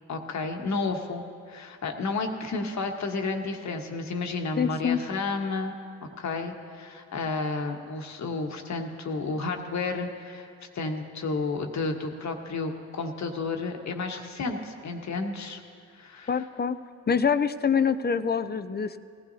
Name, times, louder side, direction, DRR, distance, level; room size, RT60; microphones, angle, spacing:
voice 1, 0.1-5.7 6.2-10.5 10.7-15.6 15.9-16.4, left 3 dB, 60° left, 4 dB, 1.4 m, -31 dB
voice 2, 4.6-5.0 16.3-16.8 17.1-19.0, left 6 dB, 30° left, 12 dB, 0.6 m, -25 dB
19.0 x 15.0 x 2.8 m, 2.3 s
supercardioid pair, 50°, 32 cm